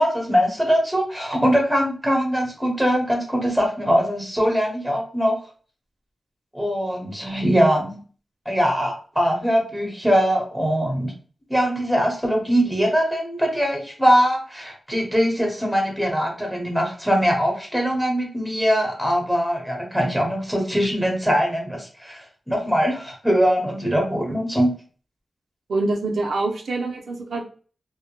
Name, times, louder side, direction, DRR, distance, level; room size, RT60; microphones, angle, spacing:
voice 1, 0.0-5.4 6.5-8.0 8.5-11.1 11.5-24.7, equal, ahead, 0 dB, 0.9 m, -22 dB
voice 2, 25.7-27.4, right 2 dB, 85° right, 2 dB, 0.4 m, -25 dB
2.1 x 2.1 x 2.9 m, 0.40 s
wide cardioid pair, 85°, 0 cm